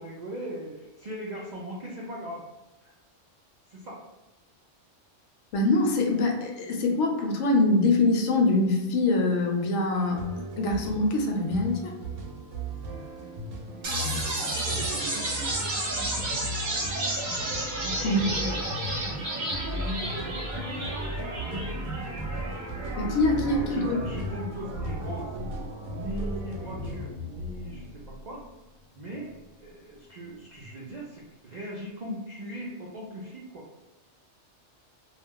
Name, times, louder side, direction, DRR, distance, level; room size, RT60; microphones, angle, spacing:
voice 1, 0.0-2.5 2.8-2.9 3.7-4.0 13.6-13.8 14.1-15.5 16.1-16.5 17.8-20.3 20.7-22.0 23.4-25.3 25.9-28.4 28.9-33.7, right 1 dB, 70° right, -4 dB, 0.4 m, -40 dB
voice 2, 5.5-11.9 18.0-18.2 23.0-24.0, left 2 dB, 75° left, 1 dB, 0.9 m, -24 dB
sound 1, 9.9-27.1, right 2 dB, 85° right, 0.9 m, -40 dB
sound 2, 13.8-27.8, right 1 dB, 45° right, 0.8 m, -32 dB
2.3 x 2.0 x 3.5 m, 1.1 s
omnidirectional pair, 1.2 m